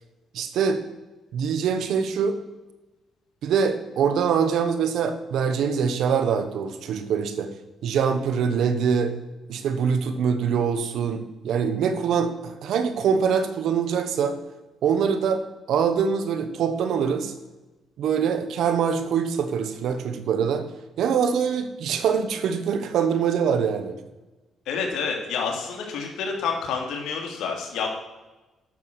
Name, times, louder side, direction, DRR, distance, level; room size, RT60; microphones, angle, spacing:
voice 1, 0.3-0.8 1.3-2.4 3.4-7.5 7.8-9.2 9.5-14.4 14.8-17.3 18.0-20.7 21.0-24.0, right 6 dB, 75° right, 10 dB, 1.2 m, -24 dB
voice 2, 24.7-27.9, left 5 dB, 80° left, 1 dB, 2.9 m, -28 dB
12.0 x 7.0 x 6.3 m, 1.1 s
cardioid pair, 90°, 0 cm